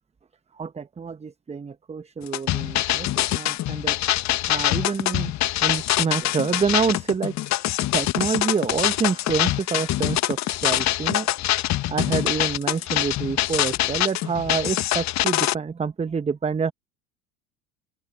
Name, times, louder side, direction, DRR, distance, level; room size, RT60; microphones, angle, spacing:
voice 1, 0.5-4.0 4.5-5.3 5.6-7.6 7.9-11.3 11.9-16.7, right 5 dB, 15° right, 1.0 m, -27 dB
sound 1, 2.3-15.5, left 15 dB, 40° left, 1.5 m, -24 dB
open air
hypercardioid pair, 75°, 41 cm